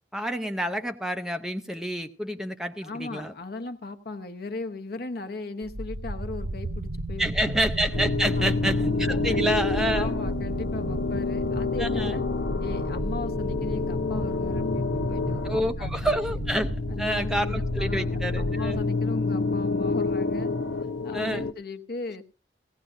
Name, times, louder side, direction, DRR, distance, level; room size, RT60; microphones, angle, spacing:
voice 1, 0.1-3.3 7.2-10.1 11.8-12.2 15.4-18.9 21.1-21.5, equal, 5° right, 7 dB, 0.6 m, -28 dB
voice 2, 2.8-7.6 8.4-8.9 9.3-9.6 9.9-12.2 12.6-16.4 16.9-20.5 21.0-22.2, left 3 dB, 60° left, 8 dB, 0.9 m, -38 dB
sound 1, 5.6-18.8, right 1 dB, 75° right, 0.8 m, -33 dB
sound 2, 7.9-21.5, left 4 dB, 85° left, 0.6 m, -29 dB
17.5 x 16.0 x 2.5 m, 0.31 s
head